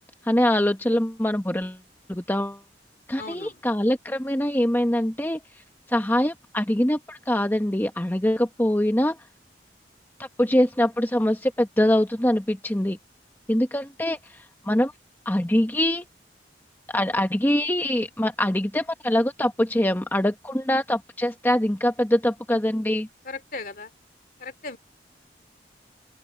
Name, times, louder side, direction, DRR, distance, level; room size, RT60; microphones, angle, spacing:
voice 1, 0.2-1.8 2.1-2.6 3.1-5.4 5.9-9.2 10.4-13.0 13.5-14.9 15.2-16.0 16.9-23.1, left 1 dB, 10° left, 1.1 m, -23 dB
voice 2, 3.2-3.6 23.2-23.9 24.4-24.8, left 3 dB, 50° left, 2.7 m, -37 dB
open air
head